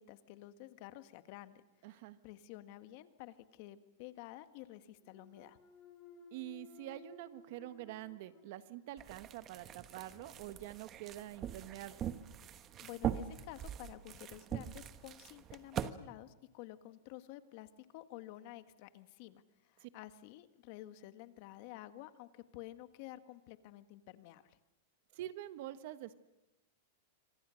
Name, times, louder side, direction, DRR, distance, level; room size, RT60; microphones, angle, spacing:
voice 1, 0.0-1.6 1.9-5.6 12.8-24.6, left 15 dB, 50° left, 10 dB, 1.6 m, -51 dB
voice 2, 1.8-2.2 6.3-12.0 19.8-19.9 25.1-26.1, right 14 dB, 55° right, 12 dB, 1.4 m, -46 dB
Thump thud, 4.9-9.0 9.4-14.1, left 6 dB, 20° left, 7.4 m, -61 dB
sound 1, 9.0-15.9, right 10 dB, 30° right, 1.1 m, -42 dB
27.5 x 25.5 x 6.5 m, 1.0 s
supercardioid pair, 145°, 0 cm